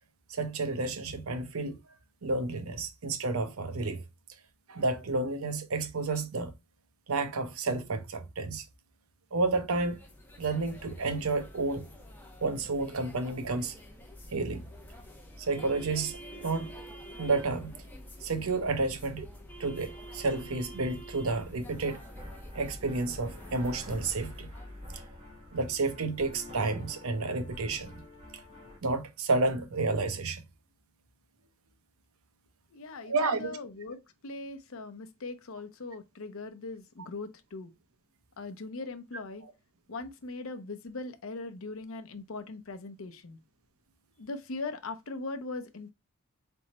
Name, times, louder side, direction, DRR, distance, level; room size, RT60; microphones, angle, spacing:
voice 1, 0.3-1.9 2.2-4.0 4.7-6.5 7.1-8.6 9.3-10.0 10.4-11.9 12.4-13.8 14.3-14.7 15.4-16.7 17.2-17.7 18.2-19.3 19.6-22.0 22.5-24.5 24.9-25.0 25.5-28.0 28.3-28.4 28.8-30.4 33.1-33.6 39.4-39.5, right 3 dB, 80° right, 0.8 m, -31 dB
sound 1, 9.8-24.9, equal, 10° left, 1.0 m, -47 dB
sound 2, 21.7-28.8, left 1 dB, 30° right, 1.7 m, -49 dB
voice 2, 32.7-37.7 38.4-39.4 39.9-43.4 44.2-45.9, left 3 dB, 70° left, 0.7 m, -40 dB
4.2 x 3.5 x 2.9 m
head